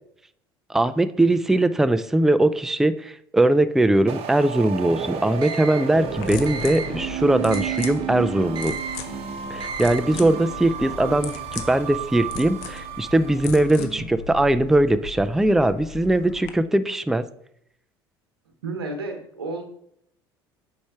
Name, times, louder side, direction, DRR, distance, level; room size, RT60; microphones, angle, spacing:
voice 1, 0.7-8.7 9.5-11.3 11.7-17.2, right 1 dB, 5° right, 12 dB, 0.3 m, -20 dB
sound 1, 4.1-13.7, right 10 dB, 50° right, 0.8 m, -34 dB
sound 2, 4.9-10.4, right 5 dB, 35° right, 1.0 m, -34 dB
sound 3, 6.1-16.5, left 8 dB, 65° left, 0.7 m, -38 dB
voice 2, 13.8-14.1 18.6-19.6, right 3 dB, 90° right, 6 dB, 0.9 m, -32 dB
5.8 x 4.3 x 4.5 m, 0.70 s
hypercardioid pair, 70°, 12 cm